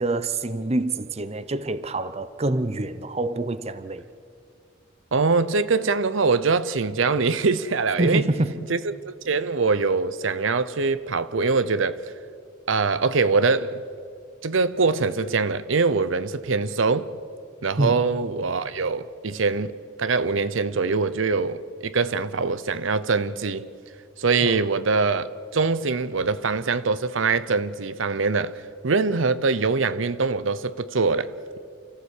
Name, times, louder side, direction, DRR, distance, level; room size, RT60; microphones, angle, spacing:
voice 1, 0.0-4.0 8.0-8.7 17.8-18.0 24.4-24.6, right 2 dB, 30° right, 0.7 m, -26 dB
voice 2, 5.1-8.2 8.7-8.8 9.1-12.0 12.7-13.8 14.4-17.1 17.6-19.7 20.0-23.7 24.2-25.3 25.5-31.6, right 4 dB, 80° right, 0.7 m, -23 dB
29.0 x 14.5 x 8.3 m
head